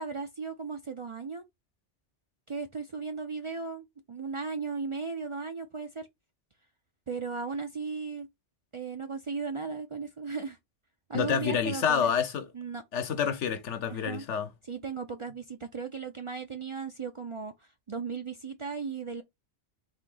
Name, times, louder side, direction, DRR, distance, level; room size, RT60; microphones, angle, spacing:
voice 1, 0.0-1.4 2.5-6.1 7.1-8.3 8.7-10.6 11.1-12.1 12.5-12.8 13.9-14.3 14.7-17.5 17.9-19.2, right 4 dB, 45° right, 0.4 m, -36 dB
voice 2, 11.1-12.5 12.9-14.5, left 7 dB, 90° left, 1.1 m, -28 dB
4.1 x 2.8 x 3.8 m
omnidirectional pair, 1.2 m